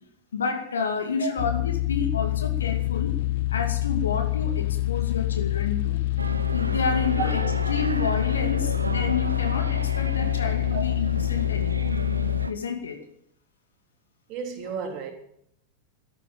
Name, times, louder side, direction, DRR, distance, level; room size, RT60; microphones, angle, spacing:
voice 1, 0.3-3.2 3.5-6.0 6.5-12.0 12.5-13.0, left 5 dB, 70° left, 5 dB, 2.5 m, -30 dB
sound 1, 1.4-12.5, left 18 dB, 55° left, 0.7 m, -26 dB
sound 2, 6.2-12.5, right 2 dB, 80° right, 0.9 m, -33 dB
voice 2, 10.7-11.0 14.3-15.1, right 5 dB, 40° right, 3 dB, 3.6 m, -32 dB
13.5 x 10.5 x 9.0 m, 0.71 s
figure-of-eight pair, 90°, 0 cm